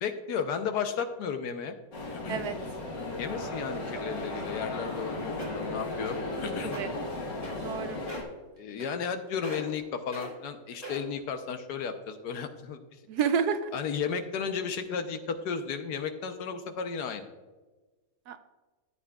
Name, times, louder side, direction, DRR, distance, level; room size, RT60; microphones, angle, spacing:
voice 1, 0.0-1.8 2.2-2.4 3.2-6.8 8.6-12.8 13.7-17.3, left 6 dB, 70° left, 7 dB, 1.3 m, -34 dB
sound 1, 1.9-8.2, left 2 dB, 85° left, 2.2 m, -35 dB
sound 2, 5.4-5.7 6.1-6.3 6.6-6.8 7.4-7.8 8.1-8.3 8.8-9.2 9.4-9.8 10.1-10.3 10.8-11.2 11.8-11.9, right 1 dB, 20° left, 2.6 m, -41 dB
voice 2, 6.6-6.9 7.6-8.0 13.1-13.7 18.3-18.4, right 7 dB, 70° right, 10 dB, 1.0 m, -29 dB
13.5 x 8.6 x 2.3 m, 1.2 s
omnidirectional pair, 1.9 m